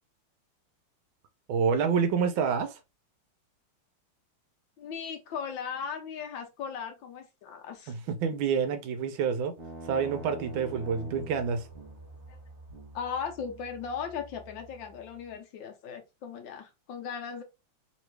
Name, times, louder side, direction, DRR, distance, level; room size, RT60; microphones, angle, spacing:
voice 1, 1.5-2.8 7.9-9.5 9.9-11.7, right 6 dB, 75° right, 1.3 m, -28 dB
voice 2, 4.8-8.0 12.3-12.4 12.9-17.4, left 6 dB, 70° left, 1.3 m, -37 dB
sound 1, 9.6-15.4, right 3 dB, 45° right, 0.9 m, -46 dB
3.3 x 3.1 x 3.1 m
omnidirectional pair, 2.3 m